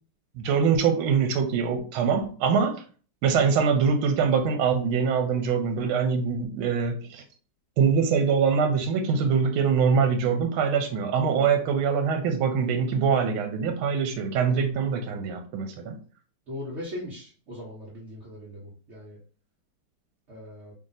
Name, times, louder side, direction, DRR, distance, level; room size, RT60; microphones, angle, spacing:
voice 1, 0.4-2.8 3.2-7.2 7.8-16.0, right 6 dB, 85° right, 6 dB, 1.5 m, -24 dB
voice 2, 16.5-19.2 20.3-20.7, left 1 dB, 45° right, -5 dB, 1.0 m, -39 dB
3.2 x 2.7 x 3.9 m, 0.40 s
omnidirectional pair, 2.3 m